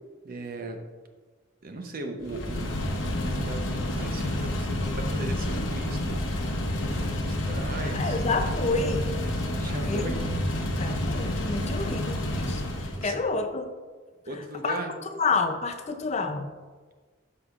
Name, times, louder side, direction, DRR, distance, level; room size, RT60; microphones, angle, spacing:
voice 1, 0.2-0.8 1.6-2.8 3.2-6.5 6.8-8.2 9.6-10.2 13.0-13.2 14.3-14.9, right 2 dB, 50° right, 4 dB, 0.8 m, -38 dB
sound 1, 2.2-13.1, left 1 dB, 85° left, 1.0 m, -29 dB
voice 2, 7.8-9.1 9.8-10.4 10.8-13.7 14.6-14.8 15.2-16.5, left 3 dB, 35° left, 6 dB, 0.5 m, -29 dB
13.0 x 4.9 x 2.4 m, 1.4 s
head